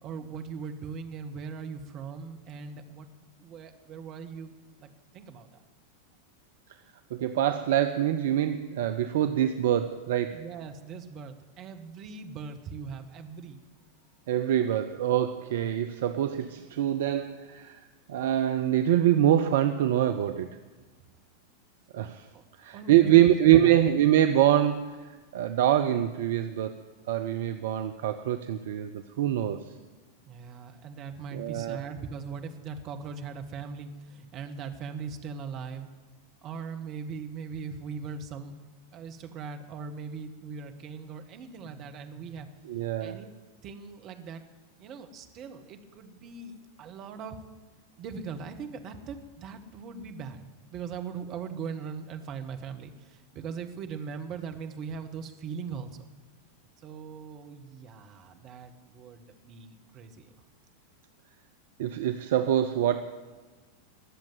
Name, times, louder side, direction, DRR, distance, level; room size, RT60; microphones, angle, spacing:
voice 1, 0.0-3.1 3.4-4.5 4.8-4.9 5.1-5.5 10.3-13.6 22.3-22.4 22.7-23.8 30.2-35.9 36.4-38.5 38.9-42.5 43.0-43.3 43.6-44.4 44.8-47.4 48.0-56.0 56.8-60.3, right 5 dB, 35° right, 6 dB, 1.6 m, -40 dB
voice 2, 7.1-10.4 14.3-17.8 18.1-20.5 21.9-22.3 22.6-26.8 27.1-29.7 31.3-31.8 42.6-43.2 61.8-63.0, right 11 dB, 55° right, 8 dB, 0.7 m, -25 dB
19.5 x 7.4 x 9.4 m, 1.3 s
figure-of-eight pair, 90°, 0 cm